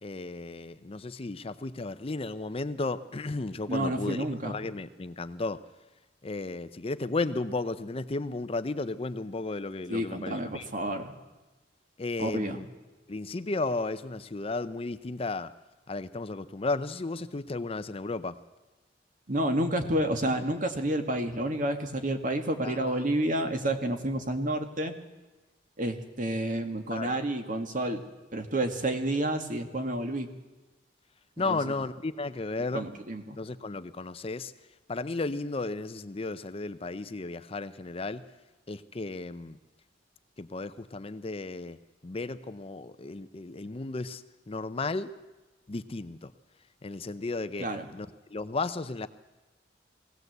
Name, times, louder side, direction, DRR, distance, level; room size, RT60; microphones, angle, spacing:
voice 1, 0.0-5.6 6.2-10.7 12.0-12.6 13.1-15.5 15.9-18.4 22.6-22.8 26.9-27.2 31.4-32.9 33.3-34.5 34.9-38.2 38.7-39.6 40.4-45.1 45.7-46.3 46.8-47.7 47.9-49.1, left 3 dB, 30° left, 12 dB, 0.6 m, -34 dB
voice 2, 3.7-4.6 9.9-11.1 12.2-12.6 19.3-24.9 25.8-28.0 28.3-30.3 31.5-31.6 32.7-33.4 47.6-47.9, right 1 dB, 45° right, 6 dB, 1.9 m, -30 dB
20.5 x 16.5 x 8.0 m, 1.1 s
head